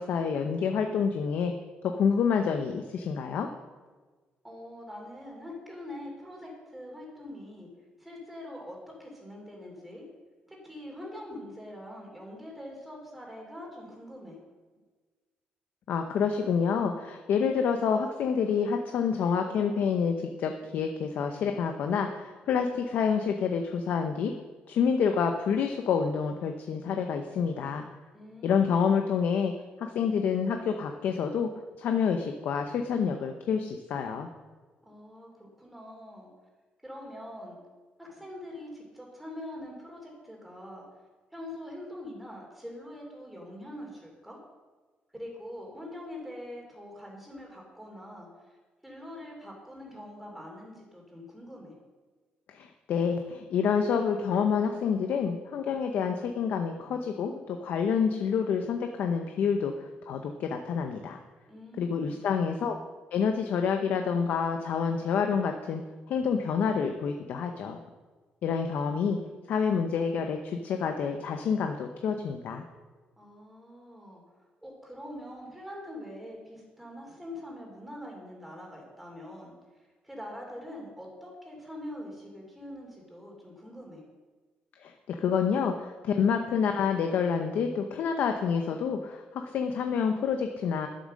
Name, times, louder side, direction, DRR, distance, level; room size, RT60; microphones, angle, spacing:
voice 1, 0.0-1.5 1.8-3.5 15.9-24.3 24.7-27.8 28.4-29.5 29.8-31.5 31.8-34.3 52.5-61.2 61.8-62.8 63.1-65.8 66.1-67.8 68.4-69.2 69.5-72.6 84.8-90.9, left 6 dB, 60° left, 5 dB, 0.8 m, -28 dB
voice 2, 4.4-7.7 8.0-10.1 10.5-14.4 28.1-28.8 34.8-36.3 36.8-37.6 38.0-40.8 41.3-44.4 45.1-48.6 48.8-51.7 61.5-62.2 73.2-74.2 74.6-84.0, left 1 dB, 5° right, -1 dB, 2.9 m, -44 dB
11.5 x 7.9 x 6.4 m, 1.4 s
cardioid pair, 180°, 4 cm